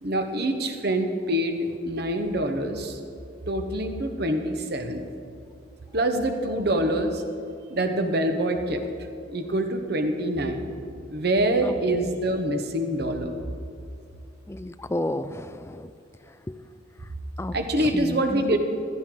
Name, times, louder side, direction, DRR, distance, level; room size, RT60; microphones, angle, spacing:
voice 1, 0.0-3.0 3.5-5.0 5.9-7.2 7.7-8.8 9.3-10.7 11.1-13.3 17.5-18.6, right 1 dB, 50° right, 5 dB, 1.1 m, -25 dB
voice 2, 11.6-12.1 14.5-15.9 16.5-16.6 17.4-17.5 17.9-18.4, left 1 dB, 15° left, 12 dB, 0.3 m, -31 dB
16.0 x 14.0 x 3.9 m, 2.5 s
head